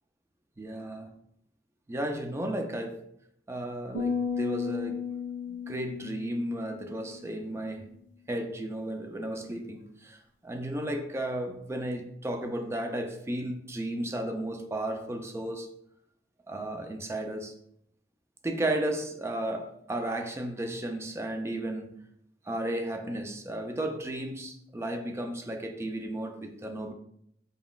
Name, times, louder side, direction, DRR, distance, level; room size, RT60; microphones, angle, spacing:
voice 1, 0.6-1.1 1.9-3.0 3.5-5.0 5.5-8.0 8.3-15.7 16.5-17.5 18.4-22.1 22.5-26.9, right 1 dB, 15° right, 5 dB, 0.4 m, -34 dB
sound 1, 3.9-7.4, left 6 dB, 85° left, 1.4 m, -34 dB
4.0 x 3.9 x 2.3 m, 0.72 s
head